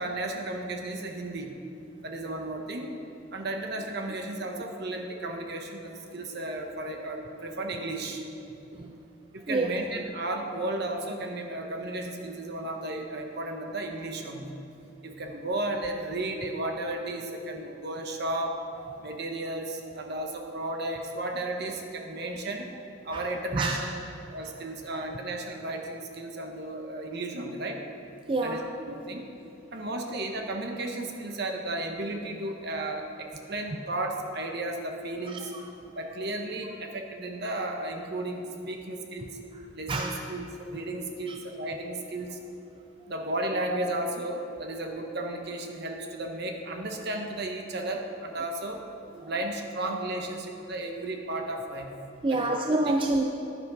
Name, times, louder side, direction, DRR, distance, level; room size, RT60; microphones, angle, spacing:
voice 1, 0.0-1.5 2.0-2.9 3.3-8.2 9.3-14.6 15.0-18.6 19.0-22.7 23.0-23.9 24.3-27.8 28.4-29.3 29.7-35.5 36.0-39.3 39.7-42.4 43.1-48.8 49.2-51.9 52.3-52.6, right 2 dB, 55° right, 3 dB, 1.0 m, -34 dB
voice 2, 28.3-28.6 35.3-35.4 39.9-40.1 41.3-41.4 52.2-53.2, right 2 dB, 25° right, 2 dB, 0.4 m, -27 dB
10.5 x 10.0 x 4.0 m, 2.9 s
head